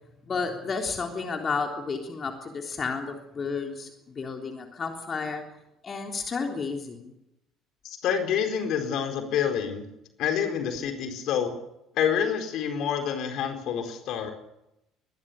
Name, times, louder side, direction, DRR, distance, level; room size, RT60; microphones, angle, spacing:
voice 1, 0.3-5.4 5.8-7.1, left 4 dB, 30° left, 3 dB, 3.6 m, -32 dB
voice 2, 7.8-9.9 10.2-11.5 11.9-14.3, left 8 dB, 50° left, 6 dB, 4.3 m, -27 dB
24.0 x 21.5 x 6.9 m, 0.84 s
figure-of-eight pair, 55°, 0 cm